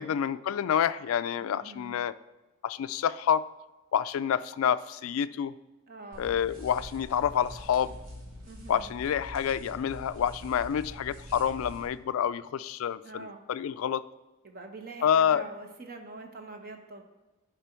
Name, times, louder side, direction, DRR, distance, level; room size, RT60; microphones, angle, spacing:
voice 1, 0.0-2.1 2.6-3.4 3.9-5.5 6.2-8.0 8.7-14.0 15.0-15.4, left 8 dB, 70° left, 16 dB, 0.3 m, -28 dB
voice 2, 1.4-1.9 5.9-6.3 8.5-8.9 13.0-13.4 14.4-17.0, right 3 dB, 45° right, 5 dB, 1.0 m, -45 dB
sound 1, 6.1-11.9, equal, 75° right, 2.3 m, -45 dB
10.0 x 5.0 x 4.4 m, 1.1 s
head